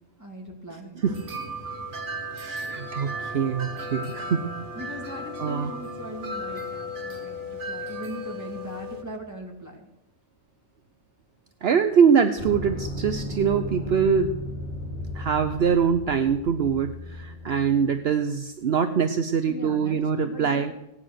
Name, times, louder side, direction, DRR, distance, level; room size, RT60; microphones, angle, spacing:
voice 1, 0.2-0.9 4.7-9.9 19.4-20.7, equal, 15° right, 0 dB, 2.7 m, -39 dB
sound 1, 1.0-9.0, equal, 85° right, 1.7 m, -35 dB
voice 2, 2.3-4.5 5.4-5.7 11.6-14.4 15.1-20.7, right 6 dB, 65° right, 8 dB, 1.0 m, -23 dB
sound 2, 2.8-6.9, right 3 dB, 45° right, 2.7 m, -47 dB
sound 3, 12.4-17.9, left 1 dB, 65° left, 4.8 m, -35 dB
17.5 x 9.9 x 6.4 m, 0.85 s
omnidirectional pair, 1.2 m